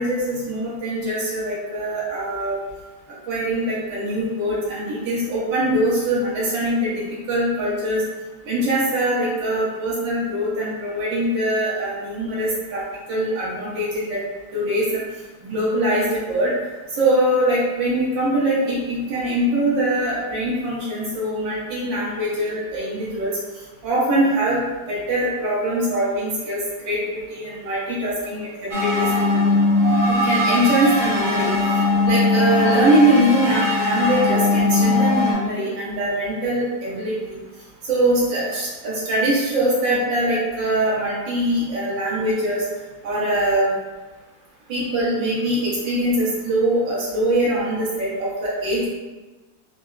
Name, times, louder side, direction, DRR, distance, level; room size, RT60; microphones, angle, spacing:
voice 1, 0.0-2.6 3.3-7.0 7.3-8.0 8.5-12.8 13.1-14.2 14.5-15.0 15.4-16.5 17.0-23.3 23.8-24.6 24.9-26.6 26.9-27.0 27.3-29.1 30.1-31.5 32.0-37.1 37.8-42.7 43.0-43.7 44.7-48.9, right 1 dB, 80° right, -7 dB, 2.0 m, -22 dB
sound 1, 28.7-35.3, left 2 dB, 30° right, 0.5 m, -20 dB
4.7 x 2.1 x 3.9 m, 1.2 s
omnidirectional pair, 2.0 m